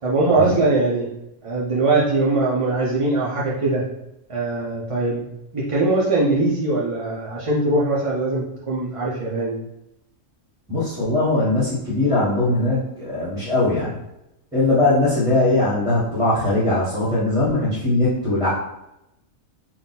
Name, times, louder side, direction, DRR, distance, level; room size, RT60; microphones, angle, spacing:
voice 1, 0.0-1.1 1.4-3.8 4.3-5.3 5.5-9.6, right 2 dB, 35° right, -7 dB, 0.5 m, -21 dB
voice 2, 10.7-13.9 14.5-18.5, left 2 dB, 5° right, -8 dB, 1.0 m, -20 dB
4.0 x 2.3 x 4.0 m, 0.85 s
omnidirectional pair, 1.4 m